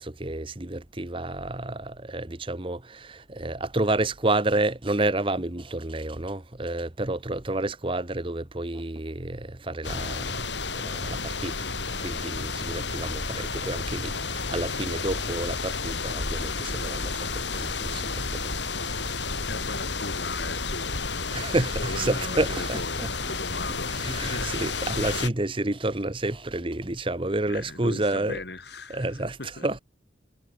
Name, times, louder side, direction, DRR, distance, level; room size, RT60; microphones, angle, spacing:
voice 1, 0.0-10.5 10.8-11.5 11.8-18.5 18.8-19.1 21.3-23.4 23.9-28.4 28.9-29.8, right 2 dB, 30° right, 1.2 m, -30 dB
sound 1, 9.8-25.3, left 4 dB, 80° left, 5.8 m, -31 dB
voice 2, 19.5-24.6 27.5-29.7, left 2 dB, 65° left, 3.3 m, -38 dB
head